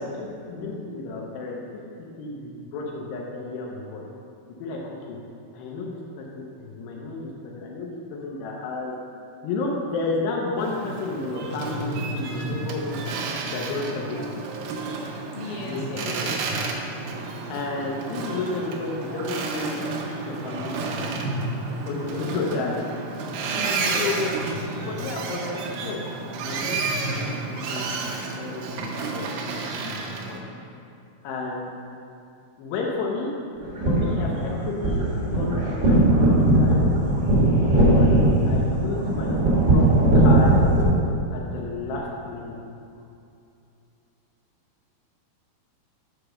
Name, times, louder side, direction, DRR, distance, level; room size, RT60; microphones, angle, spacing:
voice 1, 0.0-0.7 15.3-16.3 22.3-22.7 23.5-24.1 27.1-27.2, left 3 dB, 70° left, -4 dB, 3.1 m, -37 dB
voice 2, 0.6-1.6 2.2-4.0 4.5-5.2 5.5-9.0 9.4-13.0 13.5-14.3 15.6-16.3 17.5-19.8 20.3-21.1 21.8-22.8 23.9-24.4 24.7-26.0 26.4-29.4 29.8-30.5 31.2-31.7 32.6-33.3 33.9-36.8 37.0-37.2 37.7-38.1 38.5-39.5 39.7-40.6 41.3-42.6, left 3 dB, 90° left, -2 dB, 2.9 m, -32 dB
Boat Water vehicle, 10.6-30.4, right 3 dB, 80° right, 2.2 m, -31 dB
sound 1, 33.6-40.8, right 1 dB, 60° right, 1.1 m, -19 dB
6.6 x 4.9 x 6.3 m, 2.6 s
omnidirectional pair, 4.6 m